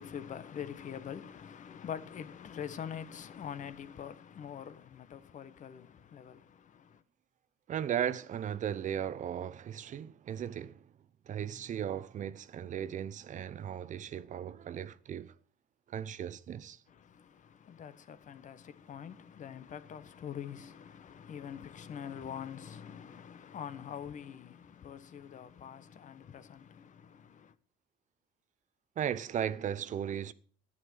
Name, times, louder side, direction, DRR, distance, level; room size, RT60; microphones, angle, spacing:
voice 1, 0.0-7.0 16.9-27.5, left 8 dB, 50° left, 1.1 m, -44 dB
voice 2, 7.7-10.8 11.3-15.3 15.9-16.8 29.0-30.3, right 9 dB, 50° right, 0.7 m, -36 dB
11.0 x 9.9 x 6.1 m
cardioid pair, 110°, 17 cm